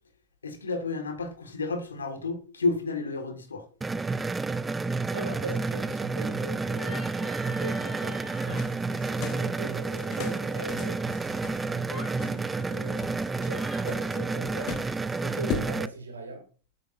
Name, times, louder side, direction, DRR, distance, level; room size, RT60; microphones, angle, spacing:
voice 1, 0.4-3.7, left 3 dB, 70° left, 1.6 m, -31 dB
sound 1, 3.8-15.9, right 3 dB, 10° right, 0.4 m, -30 dB
voice 2, 5.1-8.6 9.0-13.1 13.4-14.8 15.2-16.5, right 2 dB, 75° right, 2.0 m, -40 dB
sound 2, 6.6-8.6 11.8-12.2 13.4-13.9, equal, 5° left, 3.9 m, -43 dB
sound 3, 8.5-15.7, left 7 dB, 40° left, 0.8 m, -40 dB
8.5 x 8.4 x 2.5 m
figure-of-eight pair, 90°, 0 cm